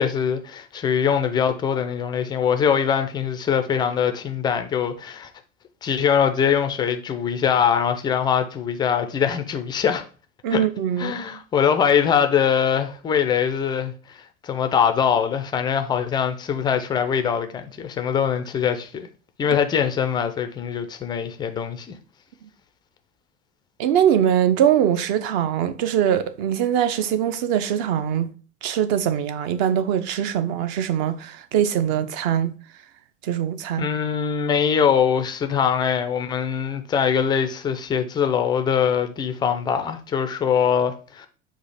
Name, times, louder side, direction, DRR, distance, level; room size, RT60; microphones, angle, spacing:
voice 1, 0.0-5.3 5.8-10.0 10.5-10.6 11.0-19.1 19.4-21.9 33.8-41.3, left 7 dB, 15° left, 0.3 m, -22 dB
voice 2, 10.4-11.2 23.8-28.3 28.6-32.5 33.2-33.9, right 9 dB, 40° right, 0.5 m, -22 dB
4.8 x 2.4 x 4.1 m
figure-of-eight pair, 80°, 37 cm